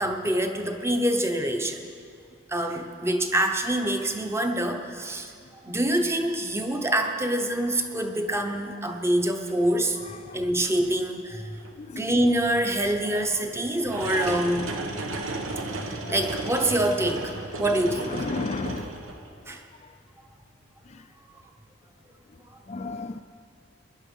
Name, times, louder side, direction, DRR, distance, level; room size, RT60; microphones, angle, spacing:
voice 1, 0.0-1.9 2.5-5.3 5.6-10.0 10.3-11.6 12.0-14.7 15.7-18.3 19.5-19.6, right 1 dB, 15° right, 5 dB, 0.8 m, -26 dB
sound 1, 7.0-7.1 7.6-7.9 8.3-8.4 9.5-9.6 10.6-10.7 11.6-11.7 13.8-19.3, right 2 dB, 90° right, 1.3 m, -34 dB
voice 2, 18.1-19.0 22.7-23.2, left 3 dB, 35° left, 8 dB, 0.4 m, -33 dB
19.5 x 11.0 x 5.4 m, 2.3 s
head